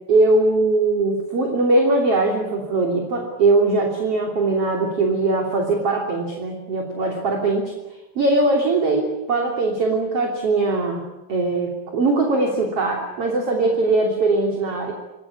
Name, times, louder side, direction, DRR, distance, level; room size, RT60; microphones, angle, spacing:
voice 1, 0.1-7.7 8.2-14.9, right 2 dB, 45° right, 1 dB, 4.0 m, -20 dB
27.0 x 20.0 x 10.0 m, 0.98 s
omnidirectional pair, 4.0 m